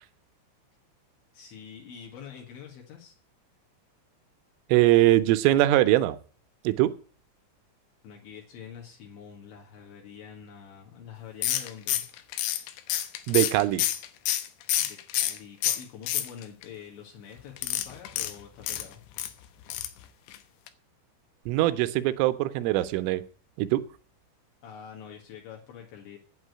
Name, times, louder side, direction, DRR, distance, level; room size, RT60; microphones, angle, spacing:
voice 1, 1.3-3.1 8.0-12.1 14.8-19.0 24.6-26.2, left 8 dB, 65° left, 4.1 m, -45 dB
voice 2, 4.7-6.2 6.6-6.9 13.3-13.8 21.5-23.2 23.6-23.8, right 16 dB, 80° right, 3.1 m, -22 dB
sound 1, 11.4-15.4 15.6-16.6 17.6-19.3 19.7-20.0 20.3-20.4 20.7-20.8, left 12 dB, 85° left, 3.8 m, -28 dB
9.0 x 8.8 x 9.8 m
omnidirectional pair, 6.0 m